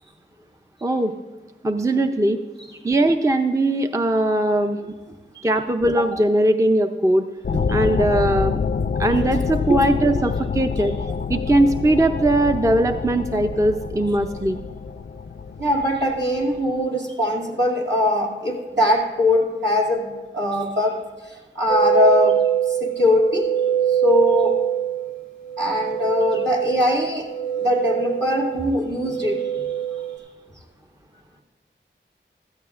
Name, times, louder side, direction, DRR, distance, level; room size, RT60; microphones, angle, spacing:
voice 1, 0.8-1.1 1.6-2.4 2.8-4.8 5.4-7.2 7.7-8.6 9.0-10.9 11.3-14.7, right 1 dB, 15° right, 7 dB, 0.5 m, -20 dB
sound 1, 7.4-16.6, left 5 dB, 50° left, 0.4 m, -27 dB
voice 2, 15.6-21.0 21.6-22.4 22.8-23.5 24.0-24.5 25.6-27.3 27.6-29.6, left 1 dB, 60° right, -3 dB, 2.4 m, -21 dB
sound 2, 21.7-30.2, right 10 dB, 30° right, 2.2 m, -24 dB
16.0 x 13.5 x 2.5 m, 1.3 s
wide cardioid pair, 40°, 20 cm